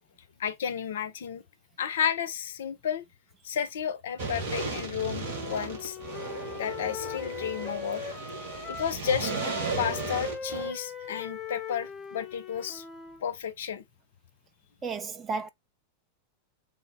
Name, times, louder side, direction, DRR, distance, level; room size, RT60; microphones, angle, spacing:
voice 1, 0.4-1.4 1.8-3.0 3.4-6.0 6.5-8.0 8.7-9.3 9.8-12.8 13.2-13.8, left 8 dB, 60° left, 0.5 m, -32 dB
sound 1, 4.2-10.7, right 3 dB, 55° right, 1.5 m, -35 dB
Wind instrument woodwind instrument, 5.2-9.0 9.2-13.2, left 5 dB, 20° left, 0.7 m, -40 dB
voice 2, 14.8-15.5, right 4 dB, 20° right, 0.6 m, -33 dB
3.0 x 2.0 x 3.9 m
figure-of-eight pair, 90°, 0 cm